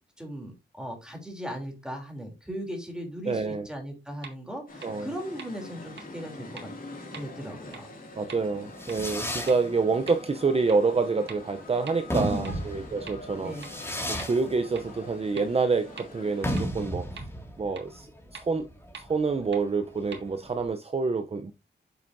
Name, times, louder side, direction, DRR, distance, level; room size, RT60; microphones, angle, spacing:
voice 1, 0.2-6.7 7.1-7.9 12.1-12.7 13.4-13.7, equal, 5° right, 3.1 m, -38 dB
voice 2, 3.3-3.7 4.8-5.1 8.2-13.5 14.1-17.1 17.6-18.1 18.3-18.7 19.0-21.5, right 4 dB, 35° right, 0.6 m, -27 dB
sound 1, 4.2-4.3 4.8-4.9 5.4-5.5 6.0-6.1 6.6-6.7 7.1-7.2 7.7-7.8 8.3-8.4 8.9-9.0 9.5-9.6 10.1-10.2 10.7-10.8 11.3-11.4 11.9-12.0 12.4-12.5 13.1-13.2 13.6-13.7 14.2-14.3 14.7-14.8 15.4-15.5 16.0-16.1 16.6-16.7 17.2-17.3 17.8-17.9 18.3-18.4 18.9-19.0 19.5-19.6 20.1-20.2, right 5 dB, 75° right, 1.9 m, -42 dB
sound 2, 4.7-16.6, left 2 dB, 50° left, 2.4 m, -45 dB
Fireworks, 8.4-20.6, equal, 15° left, 2.1 m, -35 dB
8.0 x 7.5 x 2.6 m
wide cardioid pair, 110°, 19 cm